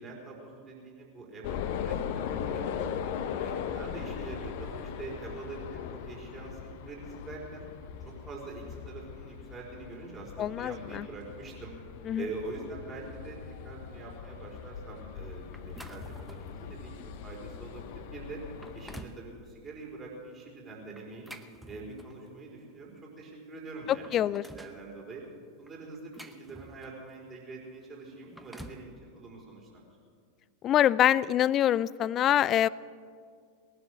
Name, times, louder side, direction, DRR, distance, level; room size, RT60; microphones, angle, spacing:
voice 1, 0.0-7.7 8.0-11.7 12.1-18.4 18.7-21.3 21.7-25.2 25.6-29.8, right 3 dB, 25° right, -2 dB, 4.7 m, -44 dB
sound 1, 1.4-19.0, left 8 dB, 50° left, 0.9 m, -39 dB
voice 2, 10.4-11.0 12.1-12.2 24.1-24.4 30.6-32.7, left 11 dB, 30° left, 21 dB, 0.3 m, -25 dB
sound 2, 15.5-16.6 17.1-17.3 17.9-18.0 18.4-19.3 21.0-22.3 23.3-23.4 23.8-24.8 25.7-27.1 28.1-28.9, right 1 dB, ahead, 0.9 m, -48 dB
20.0 x 11.0 x 6.3 m, 2.1 s
figure-of-eight pair, 90°, 0 cm